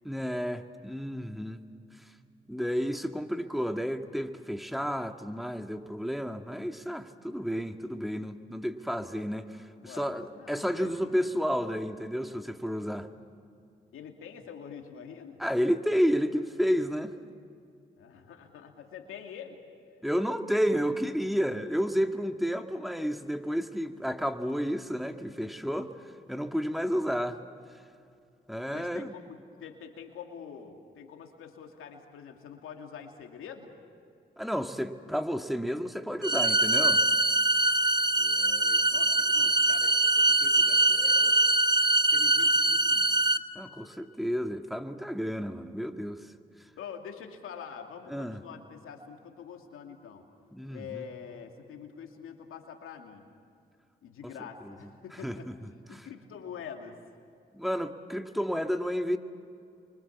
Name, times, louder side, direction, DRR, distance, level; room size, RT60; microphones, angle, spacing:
voice 1, 0.0-1.6 2.5-13.1 15.4-17.1 20.0-25.9 26.3-27.4 28.5-29.1 34.4-37.0 43.6-46.3 48.1-48.4 50.5-51.1 54.2-54.3 54.6-54.7 55.2-55.5 55.9-56.1 57.5-59.2, equal, ahead, 5 dB, 2.1 m, -31 dB
voice 2, 9.8-11.1 13.9-15.4 18.0-19.6 28.7-33.7 38.1-41.4 42.1-43.1 46.8-50.3 50.7-53.3 54.0-57.0, left 7 dB, 85° left, 3 dB, 2.5 m, -45 dB
sound 1, 36.2-43.4, right 2 dB, 20° right, 1.1 m, -23 dB
29.5 x 24.5 x 7.2 m, 2.4 s
supercardioid pair, 40°, 21 cm